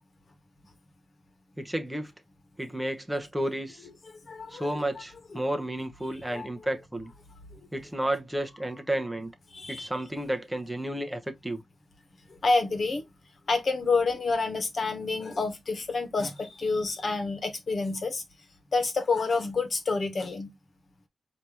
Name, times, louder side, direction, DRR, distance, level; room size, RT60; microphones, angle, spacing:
voice 1, 1.6-2.1 2.6-3.9 4.5-7.1 7.7-9.3 9.7-11.6, right 1 dB, 5° right, 1.0 m, -32 dB
voice 2, 4.0-4.7 6.3-6.5 9.5-9.9 12.4-13.0 13.5-18.2 18.7-20.5, left 3 dB, 55° left, 1.4 m, -28 dB
4.8 x 3.0 x 3.5 m
cardioid pair, 85°, 0 cm